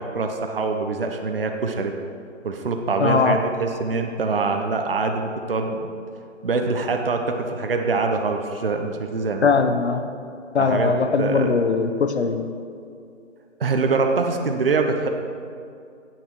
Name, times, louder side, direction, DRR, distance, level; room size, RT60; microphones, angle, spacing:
voice 1, 0.0-1.9 2.4-5.9 6.4-9.5 10.6-10.9 11.2-11.5 13.6-15.1, right 4 dB, 50° right, 4 dB, 0.9 m, -24 dB
voice 2, 3.0-3.4 9.4-10.0 10.5-12.5, left 5 dB, 60° left, 8 dB, 1.0 m, -20 dB
16.0 x 6.1 x 4.6 m, 2.4 s
hypercardioid pair, 175°, 38 cm